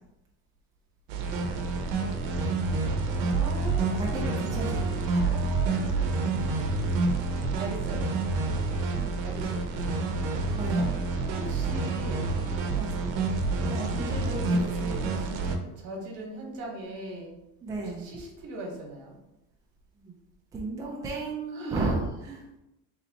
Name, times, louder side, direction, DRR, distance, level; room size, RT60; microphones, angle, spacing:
sound 1, 1.1-15.6, right 3 dB, 85° right, 0.7 m, -28 dB
voice 1, 3.1-6.6 7.6-8.0 9.2-9.7 11.3-12.4 13.7-17.4 17.8-19.2 21.5-22.0, right 2 dB, 55° right, 1 dB, 1.2 m, -40 dB
voice 2, 3.9-5.2 10.5-10.9 12.7-13.1 13.7-15.0 17.6-18.1 20.0-20.1 20.5-22.5, right 3 dB, 10° right, -3 dB, 0.4 m, -34 dB
3.2 x 2.9 x 4.0 m, 0.91 s
cardioid pair, 150°, 34 cm